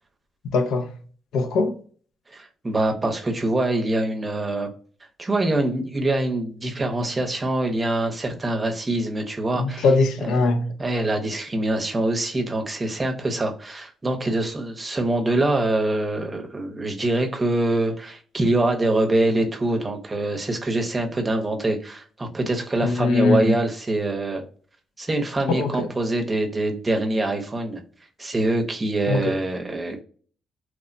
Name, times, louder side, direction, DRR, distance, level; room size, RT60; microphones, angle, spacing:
voice 1, 0.4-0.9 1.3-1.7 9.6-10.7 22.8-23.6 25.5-25.9 29.1-29.3, left 3 dB, 80° left, 0.5 m, -21 dB
voice 2, 2.3-4.7 5.2-9.9 10.2-10.4 10.8-24.4 25.0-27.8 28.2-30.0, right 2 dB, 25° right, 0.7 m, -24 dB
3.0 x 2.0 x 2.5 m
cardioid pair, 90°, 0 cm